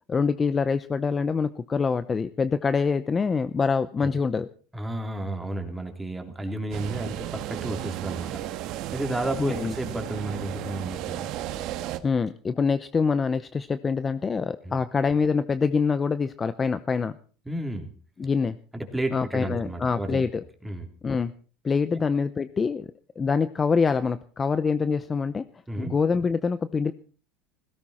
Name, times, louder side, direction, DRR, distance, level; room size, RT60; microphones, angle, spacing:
voice 1, 0.1-4.5 9.4-9.7 12.0-17.1 18.2-18.6 19.1-20.4 21.0-21.3 21.6-22.9 23.2-25.4 25.8-26.9, left 5 dB, 20° left, 13 dB, 0.7 m, -25 dB
voice 2, 4.7-8.4 8.9-11.3 14.6-14.8 17.4-17.9 18.7-20.2 20.6-20.9 21.9-22.0 25.7-25.9, right 1 dB, 5° right, 4 dB, 3.4 m, -32 dB
sound 1, 6.7-12.0, right 13 dB, 60° right, 1.7 m, -34 dB
17.5 x 16.0 x 4.3 m, 0.40 s
supercardioid pair, 125°, 0 cm